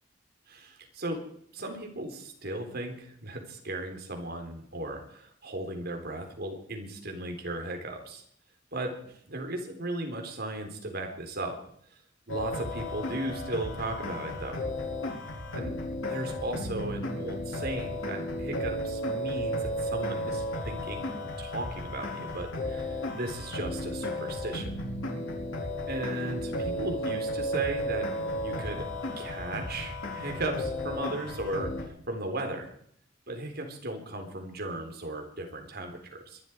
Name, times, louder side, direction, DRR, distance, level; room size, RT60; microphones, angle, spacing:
voice 1, 0.5-1.2 1.5-8.2 8.7-11.6 12.3-14.6 15.5-15.8 16.1-24.7 25.9-28.1 28.4-28.9 29.2-32.7 33.3-36.4, right 1 dB, 55° right, 4 dB, 3.9 m, -36 dB
sound 1, 12.3-31.8, equal, 85° left, 4.9 m, -34 dB
22.5 x 12.5 x 4.6 m, 0.65 s
head